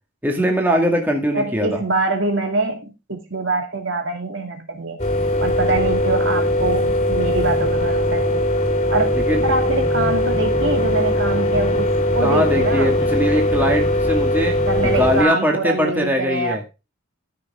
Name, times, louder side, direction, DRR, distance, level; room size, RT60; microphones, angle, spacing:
voice 1, 0.2-1.8 9.1-9.4 12.2-16.6, equal, 10° right, 1 dB, 2.0 m, -21 dB
voice 2, 1.3-5.0 5.4-8.4 8.9-9.2 9.4-11.8 12.1-13.0 14.7-16.7, right 2 dB, 75° right, 3 dB, 2.6 m, -24 dB
sound 1, 5.0-15.3, left 1 dB, 35° left, 2.5 m, -20 dB
14.5 x 6.2 x 3.6 m, 0.28 s
head